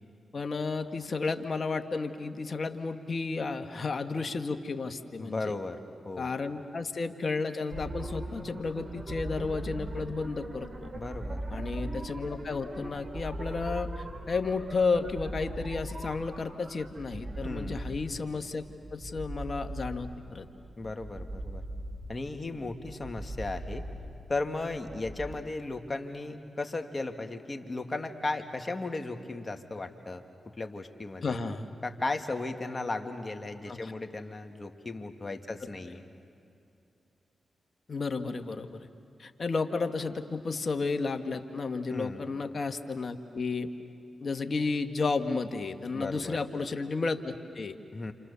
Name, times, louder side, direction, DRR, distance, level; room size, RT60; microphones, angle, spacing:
voice 1, 0.3-5.5 6.2-10.9 11.5-18.6 18.9-20.5 31.2-31.7 33.7-33.9 37.9-38.9 39.2-43.7 44.2-47.8, left 4 dB, 55° left, 7 dB, 1.6 m, -32 dB
voice 2, 5.2-5.8 6.0-6.3 10.9-11.4 17.4-17.8 20.8-21.6 22.1-23.8 24.3-30.2 30.6-31.4 31.8-36.0 41.9-42.3 45.9-46.4 47.9-48.1, left 2 dB, 35° left, 5 dB, 2.2 m, -36 dB
sound 1, 7.7-25.3, right 1 dB, 50° right, 3.0 m, -40 dB
28.5 x 28.0 x 7.0 m, 2.6 s
supercardioid pair, 40°, 0 cm